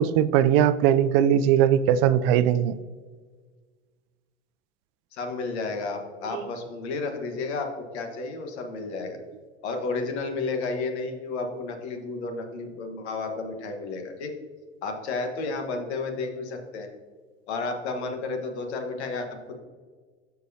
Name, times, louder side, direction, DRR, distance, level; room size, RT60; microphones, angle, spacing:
voice 1, 0.0-2.8 6.3-6.4, right 10 dB, 60° right, 15 dB, 0.5 m, -20 dB
voice 2, 5.1-7.7 7.9-9.2 9.6-14.3 14.8-16.9 17.5-19.6, left 3 dB, 80° left, 4 dB, 1.4 m, -32 dB
13.5 x 4.7 x 2.8 m, 1.5 s
hypercardioid pair, 95°, 33 cm